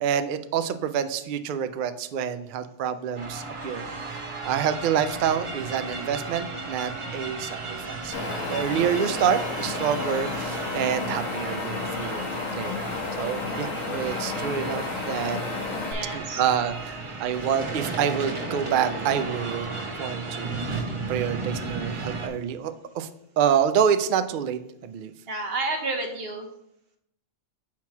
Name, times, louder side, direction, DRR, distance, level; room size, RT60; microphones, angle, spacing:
voice 1, 0.0-7.6 7.9-12.3 12.5-12.8 13.2-15.4 16.1-19.7 20.0-23.1 23.4-25.1, right 8 dB, 70° right, 9 dB, 0.4 m, -27 dB
sound 1, 3.1-22.3, right 3 dB, 30° right, 0.6 m, -34 dB
Wind, 8.1-15.9, left 4 dB, 80° left, 1.3 m, -32 dB
voice 2, 15.9-16.4 25.3-26.5, right 2 dB, 50° right, 3 dB, 1.0 m, -30 dB
7.2 x 3.0 x 5.7 m, 0.78 s
omnidirectional pair, 1.4 m